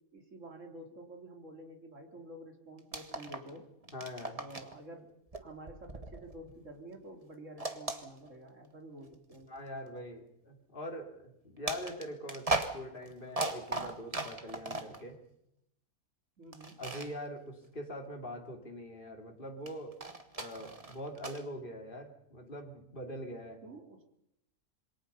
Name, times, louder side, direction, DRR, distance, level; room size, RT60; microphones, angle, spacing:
voice 1, 0.1-3.7 4.4-5.1 5.4-9.5 16.4-16.8 23.6-24.1, right 1 dB, 55° right, 3 dB, 3.2 m, -49 dB
sound 1, 2.8-3.6 3.8-4.8 5.3-6.8 7.6-8.7 9.3-9.4 11.6-15.0 16.5-17.1 19.7-21.4, right 2 dB, 25° right, 1.5 m, -38 dB
voice 2, 3.9-4.4 9.5-15.2 16.8-20.0 20.3-23.6, equal, 35° left, 2 dB, 3.3 m, -43 dB
27.0 x 22.5 x 5.6 m, 0.78 s
omnidirectional pair, 1.6 m